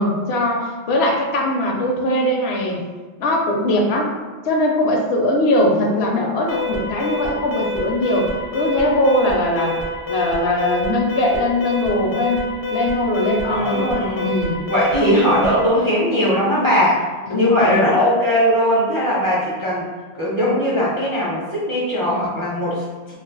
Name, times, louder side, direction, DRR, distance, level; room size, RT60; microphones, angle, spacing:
voice 1, 0.0-2.8 3.2-4.1 4.4-8.3 8.5-9.8 10.1-12.4 12.7-14.6 17.3-17.8, left 1 dB, 80° left, 0 dB, 0.8 m, -20 dB
Alarm, 6.5-15.7, left 1 dB, 40° left, 0.4 m, -27 dB
voice 2, 13.4-14.3 14.7-17.0 17.3-19.8 20.1-22.8, equal, 25° right, -7 dB, 0.5 m, -19 dB
2.3 x 2.1 x 3.7 m, 1.4 s
omnidirectional pair, 1.1 m